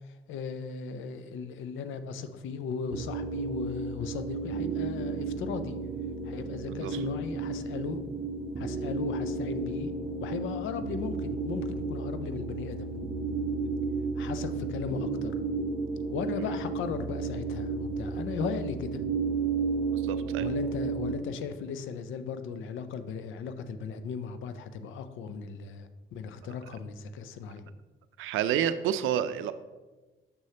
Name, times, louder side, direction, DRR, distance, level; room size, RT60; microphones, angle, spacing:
voice 1, 0.0-5.8 6.2-8.0 8.6-9.9 10.2-12.9 14.2-15.5 16.1-19.0 20.4-27.6, left 6 dB, 80° left, 10 dB, 0.6 m, -37 dB
sound 1, 2.9-21.1, right 4 dB, 30° right, 0.7 m, -33 dB
voice 2, 6.7-7.0 16.4-16.5 19.9-20.5 28.2-29.5, right 10 dB, 85° right, 12 dB, 0.4 m, -29 dB
6.3 x 6.1 x 2.8 m, 1.2 s
cardioid pair, 90°, 20 cm